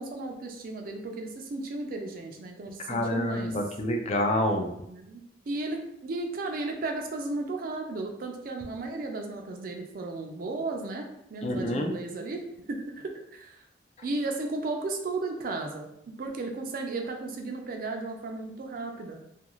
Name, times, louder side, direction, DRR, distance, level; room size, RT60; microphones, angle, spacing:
voice 1, 0.0-3.6 4.9-12.4 12.7-13.6 14.0-15.9 16.2-19.2, right 3 dB, 55° right, 3 dB, 0.4 m, -34 dB
voice 2, 2.9-4.7 11.4-11.9, left 1 dB, 40° left, 3 dB, 0.4 m, -27 dB
2.4 x 2.3 x 3.0 m, 0.78 s
head